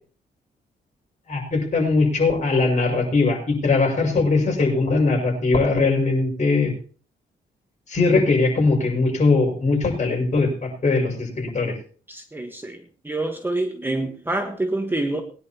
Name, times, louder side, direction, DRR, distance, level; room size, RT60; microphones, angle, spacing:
voice 1, 1.3-6.7 7.9-11.7, left 3 dB, 45° left, 0 dB, 5.7 m, -20 dB
voice 2, 12.1-15.2, right 2 dB, 10° right, 5 dB, 1.3 m, -27 dB
21.0 x 10.5 x 2.9 m, 0.41 s
cardioid pair, 110°, 17 cm